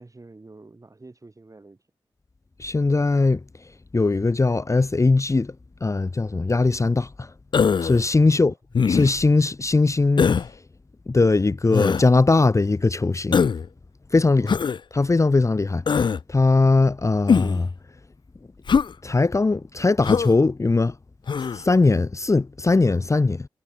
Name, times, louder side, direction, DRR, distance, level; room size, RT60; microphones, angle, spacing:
voice 1, 0.0-1.8 8.3-8.5 14.4-14.6, right 2 dB, 35° right, 5.2 m, -46 dB
voice 2, 2.6-3.4 3.9-5.5 5.8-7.3 7.8-8.5 8.9-10.5 11.1-13.4 14.1-14.6 14.9-17.7 19.0-21.0 21.5-23.5, left 3 dB, 30° left, 0.8 m, -20 dB
Human voice, 7.5-8.0 8.7-9.3 10.2-10.5 11.7-12.1 13.3-13.7 14.5-14.8 15.9-16.2 17.3-17.6 18.7-18.9 20.0-20.3 21.3-21.6, left 6 dB, 55° left, 0.5 m, -21 dB
supercardioid pair, 45°, 10 cm